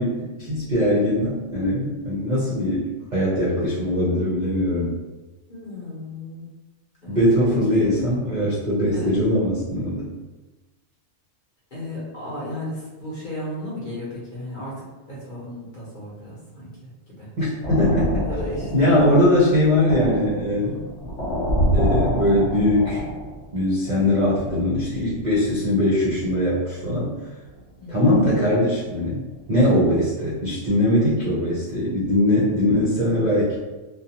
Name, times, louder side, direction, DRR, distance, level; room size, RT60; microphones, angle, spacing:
voice 1, 0.0-5.0 7.1-10.1 17.4-18.3 18.7-20.9 21.7-23.0 23.5-27.1 27.9-29.2 29.5-33.6, left 1 dB, 45° right, -8 dB, 0.6 m, -21 dB
voice 2, 5.5-6.4 7.0-7.2 7.7-7.8 8.9-9.1 11.7-16.7 17.1-17.3 18.3-18.9 20.6-20.8 27.8-28.0, left 1 dB, 40° left, -8 dB, 0.9 m, -34 dB
sound 1, 17.6-23.5 23.9-25.2 26.1-26.4 26.8-26.9 27.4-27.7 28.0-28.2, equal, 65° left, 1.1 m, -27 dB
2.5 x 2.2 x 2.8 m, 1.2 s
omnidirectional pair, 1.4 m